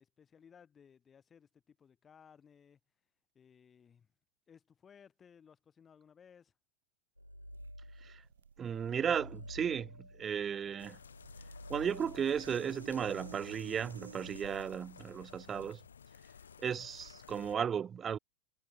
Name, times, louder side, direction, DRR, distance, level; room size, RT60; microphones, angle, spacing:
voice 1, 0.0-2.8 3.3-4.1 4.5-6.5, left 7 dB, 20° left, 5.5 m, -61 dB
sound 1, 7.2-8.3 8.6-15.2, equal, 90° left, 3.6 m, -52 dB
sound 2, 7.5-14.4, right 6 dB, 70° right, 1.1 m, -54 dB
voice 2, 8.6-11.0 11.7-15.8 16.6-18.2, right 8 dB, 20° right, 0.6 m, -35 dB
sound 3, 10.8-17.6, left 7 dB, 70° left, 1.2 m, -54 dB
figure-of-eight pair, 90°, 0 cm